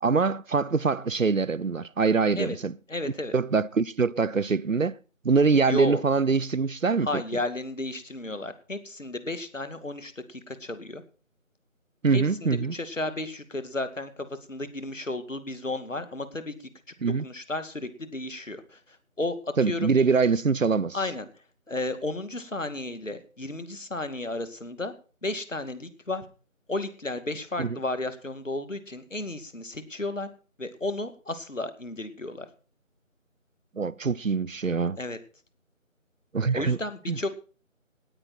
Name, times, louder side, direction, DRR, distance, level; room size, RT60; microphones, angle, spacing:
voice 1, 0.0-2.7 3.3-5.0 5.2-7.2 12.0-12.7 17.0-17.2 19.6-21.0 27.6-27.8 33.8-35.0 36.3-36.8 37.1-37.3, right 4 dB, 70° right, 0.7 m, -24 dB
voice 2, 2.9-3.4 5.7-6.0 7.0-11.0 12.1-16.7 17.2-19.9 20.9-24.9 25.2-26.3 26.7-30.3 30.6-32.5 35.0-35.2 36.5-37.3, left 2 dB, 65° left, 2.4 m, -33 dB
18.5 x 9.7 x 4.3 m
figure-of-eight pair, 170°, 40 cm